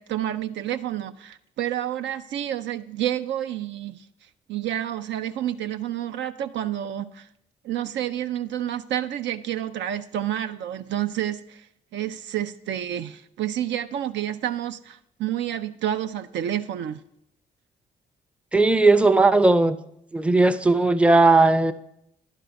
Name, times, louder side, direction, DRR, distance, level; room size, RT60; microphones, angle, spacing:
voice 1, 0.0-4.1 4.5-7.3 7.6-11.7 11.9-17.0, right 11 dB, 65° right, 10 dB, 0.4 m, -29 dB
voice 2, 18.5-19.8 20.1-21.7, right 3 dB, 5° right, 11 dB, 0.5 m, -17 dB
11.0 x 4.5 x 5.1 m, 0.78 s
hypercardioid pair, 45°, 21 cm